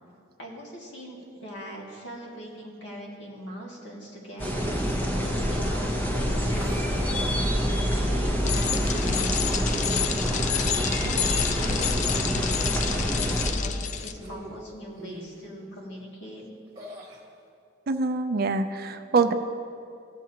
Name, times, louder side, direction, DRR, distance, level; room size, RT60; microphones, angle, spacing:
voice 1, 0.4-10.5 11.0-13.1 13.4-16.4, equal, 65° left, -3 dB, 2.0 m, -41 dB
sound 1, 4.4-13.5, equal, 10° left, 0.8 m, -26 dB
sound 2, 4.4-5.1 6.5-7.2 8.4-10.2 11.7-12.4 14.1-14.7 15.0-15.4 16.8-17.2, right 1 dB, 20° right, 1.3 m, -40 dB
Bicycle, 8.4-14.1, left 9 dB, 40° left, 0.3 m, -30 dB
voice 2, 17.9-19.3, right 4 dB, 50° right, 8 dB, 0.5 m, -24 dB
16.5 x 7.3 x 2.9 m, 2.5 s
head